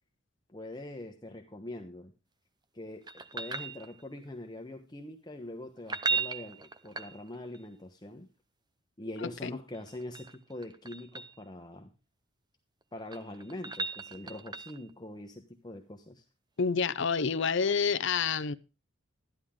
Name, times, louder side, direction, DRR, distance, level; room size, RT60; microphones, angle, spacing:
voice 1, 0.5-2.1 2.7-8.3 9.0-11.9 12.9-16.2, left 1 dB, 20° left, 1.1 m, -43 dB
sound 1, 3.1-4.3 5.8-7.6 9.7-11.4 12.8-14.9 17.7-17.8, right 4 dB, 20° right, 0.8 m, -37 dB
voice 2, 9.2-9.5 16.6-18.5, left 5 dB, 65° left, 0.7 m, -28 dB
13.5 x 11.0 x 3.7 m
head